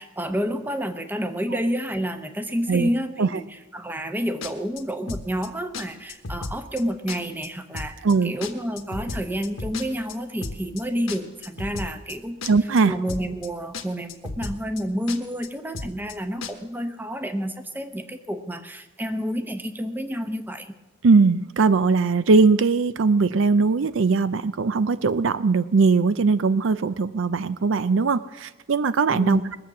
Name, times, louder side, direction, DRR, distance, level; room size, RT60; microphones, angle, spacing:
voice 1, 0.0-3.4 3.7-12.4 12.9-20.7 29.1-29.5, equal, 10° right, 8 dB, 0.8 m, -29 dB
sound 1, 4.4-4.8 5.1-5.5 5.7-5.8 6.1-6.8 7.1-7.5 7.7-8.1 8.4-10.1 10.4-10.8 11.1-12.1 12.4-12.8 13.1-13.5 13.7-13.8 14.1-14.8 15.1-15.5 15.7-16.1 16.4-16.5, left 3 dB, 75° left, 1.3 m, -34 dB
voice 2, 8.0-8.3 12.5-12.9 21.0-29.4, right 4 dB, 65° right, 14 dB, 0.5 m, -20 dB
21.0 x 7.6 x 7.2 m, 1.1 s
head